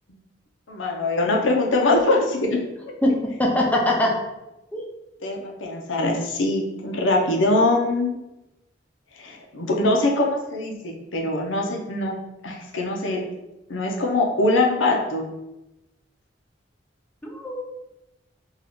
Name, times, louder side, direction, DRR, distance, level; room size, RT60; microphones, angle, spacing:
voice 1, 0.7-2.6 5.2-8.2 9.2-12.2 12.4-13.2 13.7-15.2, left 2 dB, 85° left, 0 dB, 0.7 m, -22 dB
voice 2, 3.4-4.1 4.7-4.8 17.3-17.6, left 1 dB, 10° left, -1 dB, 0.6 m, -21 dB
2.9 x 2.4 x 4.2 m, 0.96 s
head